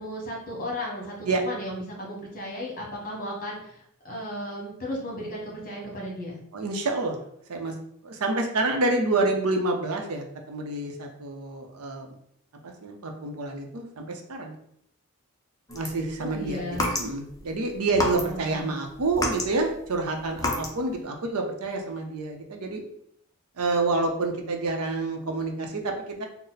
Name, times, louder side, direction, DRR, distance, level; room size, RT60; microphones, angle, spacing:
voice 1, 0.0-6.4 16.2-16.9 18.2-18.7, equal, 40° left, -2 dB, 1.2 m, -35 dB
voice 2, 6.5-7.2 7.5-7.7 8.0-12.1 12.6-14.6 15.7-22.8 23.6-26.3, right 2 dB, 80° right, 3 dB, 0.7 m, -28 dB
sound 1, 15.7-17.4 17.9-18.6 18.9-20.9, left 1 dB, 15° left, 0.6 m, -30 dB
3.9 x 2.1 x 4.0 m, 0.71 s
head